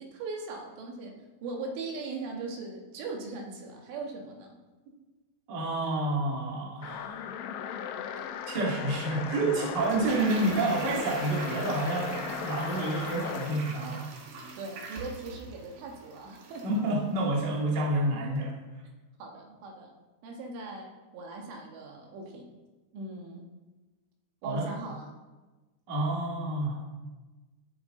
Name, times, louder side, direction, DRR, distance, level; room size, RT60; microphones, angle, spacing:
voice 1, 0.0-4.5 14.6-16.7 19.2-19.9 20.2-22.5 22.9-23.5 24.4-25.1, right 3 dB, 85° right, 0 dB, 4.1 m, -39 dB
voice 2, 5.5-7.3 8.5-14.0 16.6-18.5 24.4-24.7 25.9-26.8, right 2 dB, 35° right, -4 dB, 1.9 m, -29 dB
sound 1, 6.8-13.6, left 8 dB, 80° left, 2.6 m, -37 dB
Toilet flush, 9.7-16.8 17.1-17.2, right 4 dB, 65° right, 2.4 m, -41 dB
16.5 x 8.1 x 3.9 m, 1.2 s
omnidirectional pair, 5.5 m